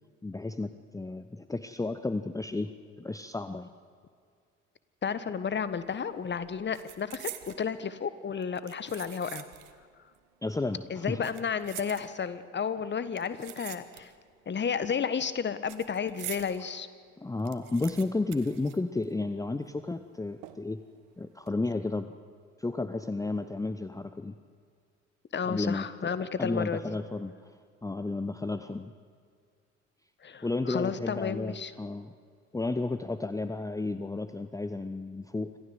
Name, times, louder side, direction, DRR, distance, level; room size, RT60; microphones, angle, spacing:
voice 1, 0.2-2.7 3.0-3.7 10.4-11.2 17.2-20.8 21.2-22.1 22.6-24.4 25.4-26.1 26.4-27.3 27.8-28.9 30.4-32.1 32.5-35.5, left 2 dB, 10° left, 10 dB, 0.9 m, -32 dB
voice 2, 5.0-9.5 10.9-14.1 14.5-16.9 25.3-27.0 30.2-31.7, left 6 dB, 30° left, 14 dB, 1.5 m, -32 dB
sound 1, 5.7-6.0 6.2-7.7 8.4-9.8 10.1-10.2 11.0-12.5 13.1-14.3 14.6-16.6 17.0-17.1 17.3-19.4 19.6-19.7 20.4-20.9 21.3-21.5, right 15 dB, 60° right, 1.5 m, -45 dB
26.5 x 15.5 x 8.0 m, 2.1 s
figure-of-eight pair, 50°, 36 cm